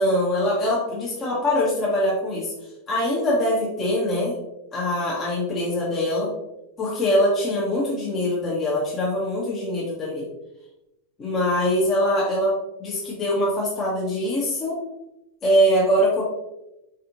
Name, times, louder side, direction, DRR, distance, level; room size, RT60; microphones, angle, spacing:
voice 1, 0.0-2.5 2.9-4.4 4.7-6.3 6.8-10.3 11.2-14.8 15.4-16.2, equal, 25° left, -5 dB, 1.2 m, -23 dB
4.8 x 4.1 x 2.6 m, 0.92 s
figure-of-eight pair, 90°, 0 cm